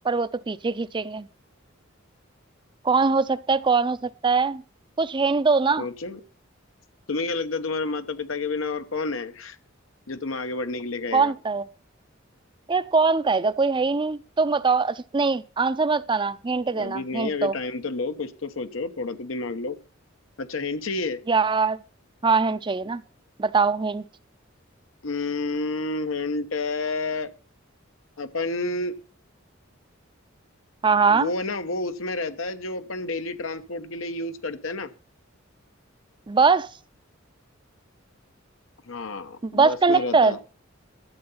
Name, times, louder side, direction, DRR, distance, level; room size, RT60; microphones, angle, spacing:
voice 1, 0.0-1.3 2.8-4.6 5.0-5.8 11.1-11.6 12.7-17.5 21.3-21.8 22.2-23.0 23.4-24.1 30.8-31.3 36.3-36.7 39.4-40.3, right 4 dB, 25° right, 0.5 m, -22 dB
voice 2, 5.8-6.2 7.1-9.6 10.1-11.3 16.7-19.8 20.4-21.2 25.0-27.3 28.2-28.9 31.1-34.9 38.9-40.4, left 3 dB, 80° left, 1.0 m, -30 dB
12.0 x 7.8 x 5.6 m
head